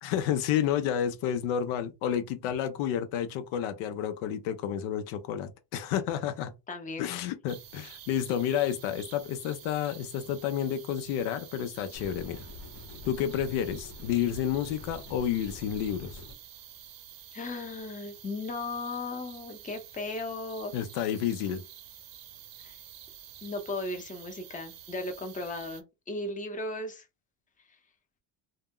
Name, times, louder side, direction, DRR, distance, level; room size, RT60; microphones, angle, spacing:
voice 1, 0.0-6.5 7.0-12.5 13.1-16.2 20.7-21.6, left 9 dB, 90° left, 0.6 m, -30 dB
voice 2, 6.7-7.1 17.3-20.7 22.6-22.8 23.4-27.1, left 2 dB, 15° left, 0.7 m, -36 dB
sound 1, 7.5-25.8, right 10 dB, 50° right, 0.6 m, -49 dB
sound 2, 11.9-16.3, left 3 dB, 50° left, 0.9 m, -46 dB
2.1 x 2.0 x 3.5 m
cardioid pair, 105°, 48 cm